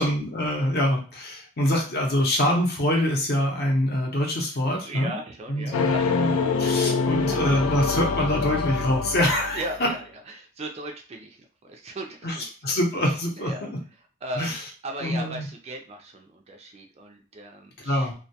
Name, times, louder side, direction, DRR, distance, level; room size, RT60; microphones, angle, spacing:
voice 1, 0.0-5.2 5.5-6.3 6.6-9.6 12.2-12.3 12.6-13.8 14.4-14.6 15.0-15.5 17.8-18.1, left 1 dB, 50° left, 0 dB, 0.7 m, -25 dB
voice 2, 4.8-6.2 6.4-6.5 9.5-12.8 13.4-13.7 14.2-14.6 14.8-18.1, right 1 dB, 30° right, 3 dB, 0.3 m, -37 dB
sound 1, 5.7-9.9, left 5 dB, 90° left, 0.3 m, -25 dB
2.2 x 2.2 x 2.7 m, 0.37 s
head